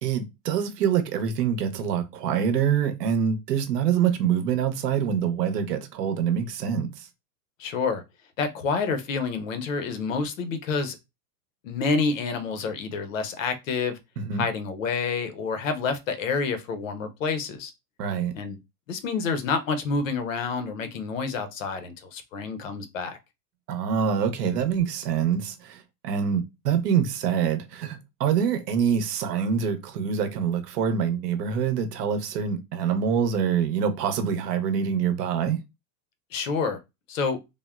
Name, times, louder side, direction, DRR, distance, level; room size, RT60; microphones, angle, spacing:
voice 1, 0.0-7.1 14.2-14.5 18.0-18.3 23.7-35.6, right 7 dB, 75° right, 0.8 m, -25 dB
voice 2, 7.6-8.0 8.4-11.0 11.6-14.0 14.4-17.7 18.3-18.6 18.9-23.2 36.3-36.8 37.1-37.4, left 4 dB, 55° left, 0.6 m, -28 dB
3.5 x 2.1 x 2.3 m
supercardioid pair, 175°, 48 cm